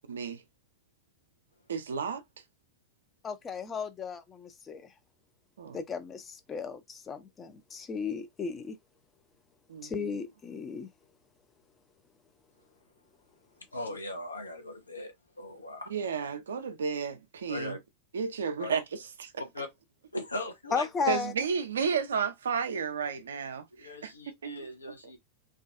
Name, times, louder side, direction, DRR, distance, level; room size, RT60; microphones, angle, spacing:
voice 1, 0.1-0.4 1.7-2.2 5.6-5.8 9.7-10.2 15.9-17.8 18.1-19.3 21.1-24.1 24.4-24.6, right 6 dB, 65° right, 0.4 m, -32 dB
voice 2, 3.2-4.8 5.7-8.7 9.8-10.9 20.7-21.3, left 6 dB, 20° left, 0.4 m, -35 dB
voice 3, 13.7-15.9 17.5-17.8 18.6-18.7 19.4-19.7 20.1-21.0 23.8-25.2, left 1 dB, 80° left, 0.7 m, -39 dB
2.4 x 2.2 x 2.4 m
figure-of-eight pair, 90°, 0 cm